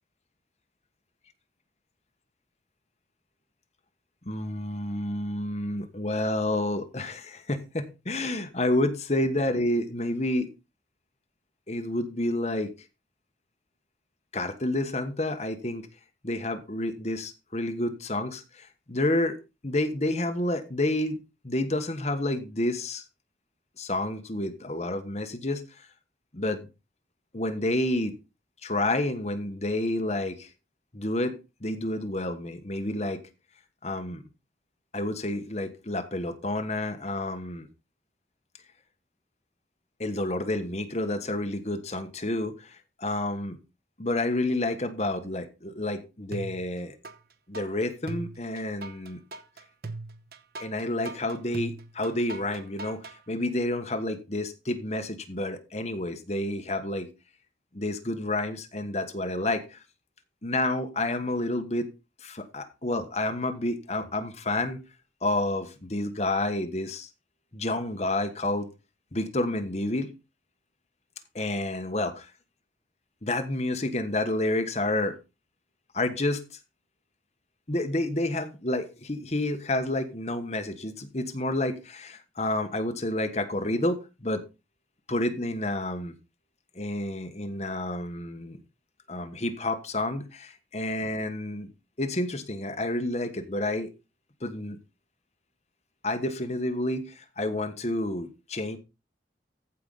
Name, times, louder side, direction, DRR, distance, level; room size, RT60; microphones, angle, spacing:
voice 1, 4.2-10.5 11.7-12.7 14.3-15.9 16.2-19.4 19.6-23.0 23.8-25.9 26.3-26.7 27.3-28.1 28.6-30.5 30.9-33.2 33.8-34.2 34.9-37.7 40.0-43.6 44.0-46.9 47.5-49.2 50.6-57.1 57.7-59.8 60.4-61.9 62.2-64.8 65.2-67.1 67.5-68.7 69.1-70.1 71.3-72.3 73.2-75.2 75.9-76.6 77.7-84.4 85.1-86.1 86.7-88.6 89.1-91.7 92.0-93.9 94.4-94.8 96.0-98.8, left 1 dB, 35° left, 1.2 m, -29 dB
sound 1, 46.3-47.2 47.5-53.2, right 3 dB, 55° right, 0.9 m, -39 dB
14.5 x 5.1 x 4.0 m
head